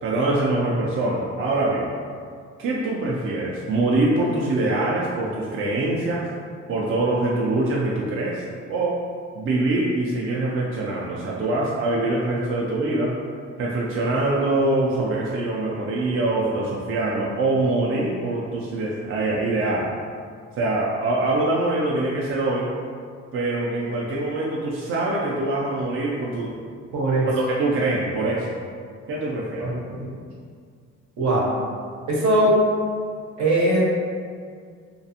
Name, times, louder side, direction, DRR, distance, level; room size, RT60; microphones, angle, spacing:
voice 1, 0.0-1.9 2.6-6.3 6.7-8.4 8.7-9.0 9.3-13.1 13.6-19.9 20.5-22.7 23.3-26.6 27.3-28.5 29.1-29.8, right 2 dB, 45° right, -4 dB, 0.4 m, -24 dB
voice 2, 26.9-27.3 29.6-30.1 31.2-31.5 32.1-32.6 33.4-33.8, right 1 dB, 70° right, -5 dB, 0.8 m, -20 dB
2.4 x 2.3 x 2.7 m, 2.1 s
cardioid pair, 90°, 30 cm